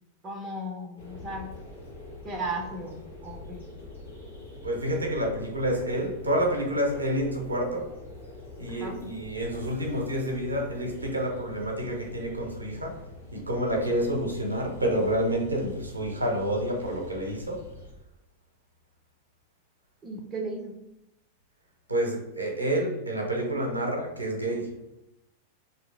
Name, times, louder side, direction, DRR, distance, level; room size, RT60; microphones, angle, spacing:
voice 1, 0.2-1.5 2.2-3.7 8.7-9.0 20.0-20.7, right 1 dB, 25° right, 0.6 m, -36 dB
sound 1, 1.0-17.9, left 2 dB, 80° left, 1.3 m, -45 dB
voice 2, 4.6-7.9 8.6-13.0 13.3-17.7 21.9-24.8, right 1 dB, 80° right, 0.7 m, -28 dB
3.1 x 2.7 x 3.8 m
figure-of-eight pair, 90°, 0 cm